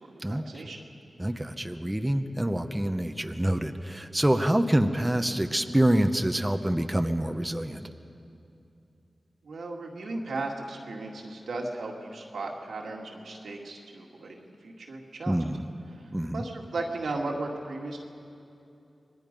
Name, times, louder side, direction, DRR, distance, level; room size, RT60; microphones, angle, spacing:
voice 1, 0.1-0.8 9.4-15.4 15.9-18.0, right 2 dB, 90° right, 0 dB, 2.2 m, -36 dB
voice 2, 1.2-7.9 15.3-15.6 16.1-16.4, right 1 dB, 15° right, 7 dB, 1.0 m, -26 dB
25.0 x 20.5 x 5.3 m, 2.7 s
cardioid pair, 60°, 0 cm